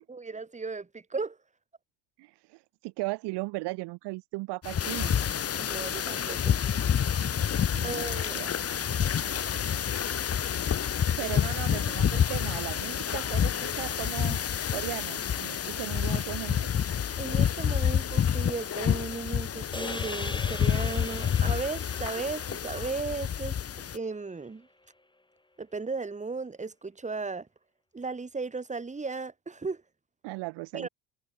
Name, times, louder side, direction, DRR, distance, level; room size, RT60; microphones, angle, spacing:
voice 1, 0.1-1.4 5.6-6.6 7.8-8.4 11.2-11.3 17.2-23.5 23.9-24.7 25.6-27.5 27.9-29.8 30.7-30.9, right 4 dB, 15° right, 1.8 m, -35 dB
voice 2, 2.2-5.1 7.7-8.9 11.2-14.4 14.7-16.7 30.2-30.9, right 24 dB, 55° right, 0.9 m, -37 dB
sound 1, 4.6-24.0, left 8 dB, 30° left, 1.3 m, -28 dB
sound 2, 19.7-24.1, left 2 dB, 10° left, 3.6 m, -42 dB
hypercardioid pair, 65°, 50 cm